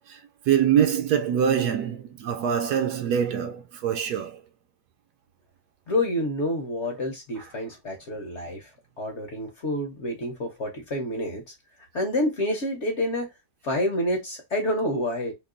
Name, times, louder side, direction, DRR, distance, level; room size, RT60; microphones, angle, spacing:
voice 1, 0.5-4.4 7.4-7.5, right 8 dB, 75° right, 1.1 m, -24 dB
voice 2, 5.9-8.7 9.0-11.4 11.9-13.3 13.6-15.3, left 1 dB, 50° left, 1.0 m, -28 dB
3.0 x 2.6 x 3.7 m
omnidirectional pair, 1.9 m